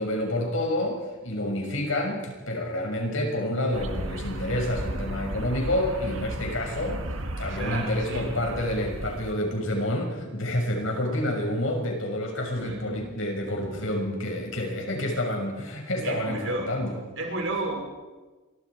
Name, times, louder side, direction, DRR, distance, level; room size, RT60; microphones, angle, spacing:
voice 1, 0.0-7.0 7.4-17.0, left 1 dB, 75° left, 2 dB, 6.3 m, -28 dB
sound 1, 3.7-9.3, right 1 dB, 85° right, 1.9 m, -34 dB
voice 2, 7.5-8.3 12.5-13.1 13.6-14.0 16.0-16.8 17.2-17.8, right 2 dB, 70° right, 1 dB, 6.0 m, -33 dB
27.0 x 24.0 x 4.9 m, 1.3 s
head